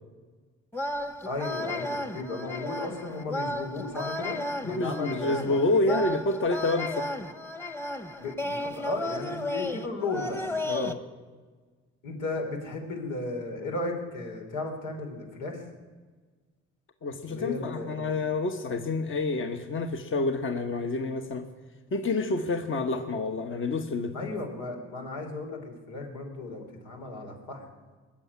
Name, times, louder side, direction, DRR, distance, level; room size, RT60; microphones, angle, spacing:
sound 1, 0.7-10.9, left 1 dB, 10° left, 1.1 m, -34 dB
voice 1, 1.3-5.6 8.2-10.4 12.0-15.6 17.3-18.2 24.1-25.6 25.9-27.6, left 2 dB, 90° left, 2 dB, 3.5 m, -35 dB
voice 2, 4.6-7.1 10.6-11.0 17.0-21.5 21.9-24.3, left 2 dB, 40° left, 6 dB, 1.2 m, -28 dB
20.5 x 7.4 x 9.6 m, 1.4 s
cardioid pair, 90°, 30 cm